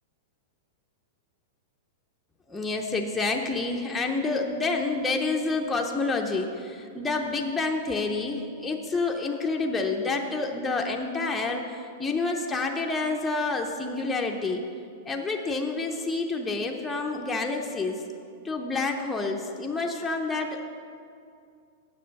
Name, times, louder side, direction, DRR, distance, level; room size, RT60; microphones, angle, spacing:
voice 1, 2.5-14.6 15.1-18.0 18.4-20.6, left 3 dB, 5° left, 0 dB, 0.4 m, -28 dB
7.5 x 6.9 x 6.3 m, 2.4 s
supercardioid pair, 170°, 0 cm